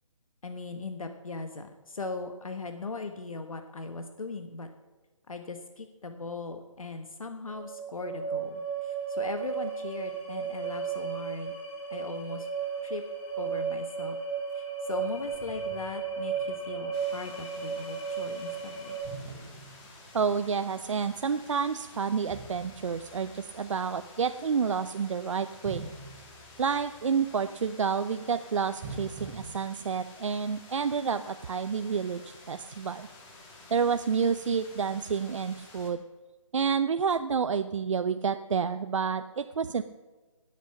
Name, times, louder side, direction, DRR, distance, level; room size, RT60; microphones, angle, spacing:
voice 1, 0.4-4.7 5.3-11.5 11.9-12.5 12.8-13.0 13.4-14.2 14.5-19.0, left 3 dB, 90° left, 7 dB, 1.4 m, -39 dB
sound 1, 7.5-19.0, right 6 dB, 45° left, 6.0 m, -34 dB
sound 2, 14.5-14.6 14.9-16.9 17.3-17.4 19.0-20.4 22.3-23.7 25.6-27.2 28.8-29.5, right 3 dB, 25° right, 3.1 m, -45 dB
sound 3, 16.9-35.9, left 2 dB, 15° left, 2.0 m, -51 dB
voice 2, 20.1-25.9 26.6-33.1 33.7-36.0 36.5-39.8, right 6 dB, 65° right, 9 dB, 0.6 m, -29 dB
19.0 x 8.2 x 5.9 m, 1.2 s
hypercardioid pair, 160°, 17 cm